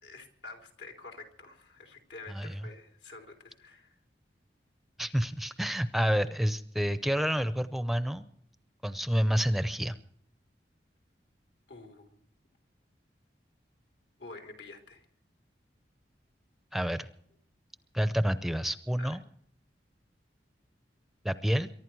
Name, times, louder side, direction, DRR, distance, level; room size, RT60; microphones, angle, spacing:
voice 1, 0.0-4.0 11.7-12.2 14.2-15.1 19.0-19.2, left 3 dB, 80° left, 3 dB, 3.7 m, -48 dB
voice 2, 5.0-8.3 8.8-10.0 16.7-17.1 17.9-19.2 21.2-21.7, equal, ahead, 12 dB, 0.6 m, -29 dB
23.5 x 11.5 x 4.7 m, 0.65 s
head